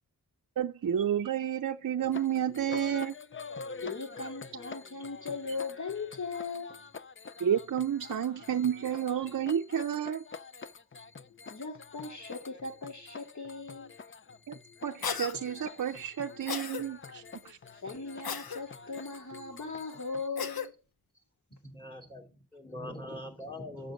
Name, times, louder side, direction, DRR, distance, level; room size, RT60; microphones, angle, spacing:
voice 1, 0.6-3.1 7.4-10.2 14.5-14.6 14.8-17.6, right 9 dB, 60° right, 0.5 m, -31 dB
sound 1, 2.0-20.3, left 5 dB, 35° left, 0.5 m, -46 dB
voice 2, 3.8-6.8 11.5-13.9 17.7-20.7, left 4 dB, 55° left, 2.6 m, -38 dB
Cough, 15.0-15.4 16.5-16.8 18.2-18.6 20.4-20.7, left 6 dB, 85° left, 0.8 m, -34 dB
voice 3, 21.5-23.9, left 1 dB, 15° left, 2.8 m, -43 dB
8.4 x 6.4 x 6.3 m
wide cardioid pair, 85°, 35 cm